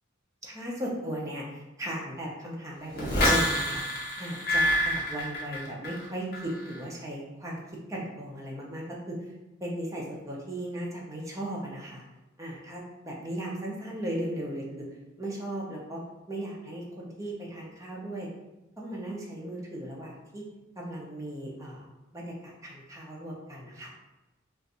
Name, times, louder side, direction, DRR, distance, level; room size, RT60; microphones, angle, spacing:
voice 1, 0.4-7.6 7.9-9.2 9.6-12.0 12.4-14.9 15.2-16.0 16.3-18.3 18.8-20.4 20.8-21.9 22.1-23.9, right 1 dB, 15° right, -3 dB, 0.7 m, -37 dB
sound 1, 3.0-6.0 6.3-6.8, left 1 dB, 50° left, 0.8 m, -27 dB
2.5 x 2.3 x 4.1 m, 1.0 s
head